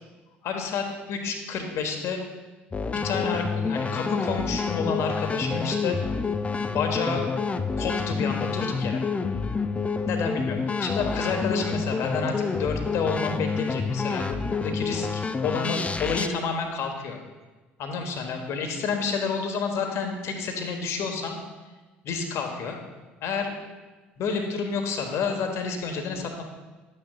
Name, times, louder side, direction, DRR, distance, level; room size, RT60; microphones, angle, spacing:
voice 1, 0.4-2.2 2.9-6.0 6.6-7.3 7.8-9.0 10.1-17.2 17.8-21.4 22.0-22.8 23.2-23.5 24.2-26.4, left 5 dB, 55° left, 4 dB, 1.3 m, -29 dB
sound 1, 2.7-16.3, left 4 dB, 20° left, 0.5 m, -28 dB
11.5 x 8.8 x 2.4 m, 1.2 s
figure-of-eight pair, 60°, 6 cm